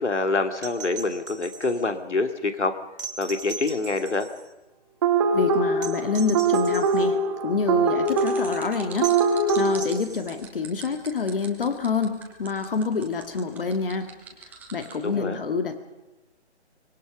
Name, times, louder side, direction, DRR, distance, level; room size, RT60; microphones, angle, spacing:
voice 1, 0.0-2.7 3.2-4.3 15.0-15.4, left 3 dB, 80° left, 7 dB, 2.7 m, -26 dB
sound 1, 0.6-1.9 3.0-4.5 5.8-7.1 9.0-10.5 12.3-12.4, right 6 dB, 50° right, 2.3 m, -39 dB
sound 2, 5.0-9.8, right 3 dB, 25° right, 1.6 m, -23 dB
voice 2, 5.3-7.2 7.4-9.1 9.6-14.1 14.7-15.8, left 5 dB, 50° left, 7 dB, 2.1 m, -27 dB
sound 3, 8.0-15.0, right 6 dB, 5° right, 1.4 m, -43 dB
24.5 x 20.5 x 5.3 m, 1.0 s
figure-of-eight pair, 155°, 34 cm